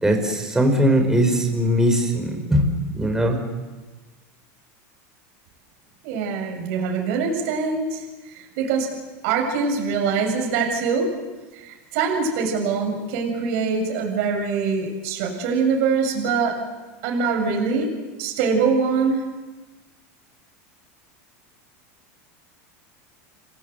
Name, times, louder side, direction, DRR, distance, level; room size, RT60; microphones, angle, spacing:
voice 1, 0.0-2.7 2.9-3.4, equal, 5° right, 4 dB, 5.2 m, -20 dB
voice 2, 6.0-8.0 8.3-8.9 9.2-11.1 11.5-16.5 17.0-17.9 18.2-19.2, right 5 dB, 65° right, 2 dB, 7.4 m, -23 dB
30.0 x 22.5 x 8.2 m, 1.2 s
supercardioid pair, 140°, 8 cm